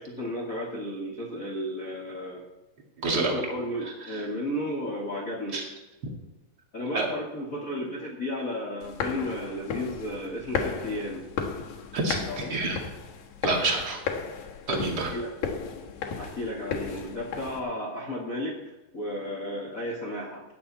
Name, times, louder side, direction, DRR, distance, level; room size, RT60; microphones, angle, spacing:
voice 1, 0.0-2.4 3.1-5.6 6.7-11.2 12.3-12.5 15.1-15.3 16.2-20.4, left 1 dB, 80° left, -4 dB, 0.7 m, -33 dB
voice 2, 3.0-3.4 3.8-4.2 5.5-5.7 6.9-7.1 11.9-12.8 13.4-14.0 14.7-15.1, right 3 dB, 40° right, -1 dB, 1.4 m, -28 dB
sound 1, 8.8-17.6, left 6 dB, 65° left, 2.7 m, -35 dB
16.0 x 9.8 x 4.2 m, 1.0 s
omnidirectional pair, 5.5 m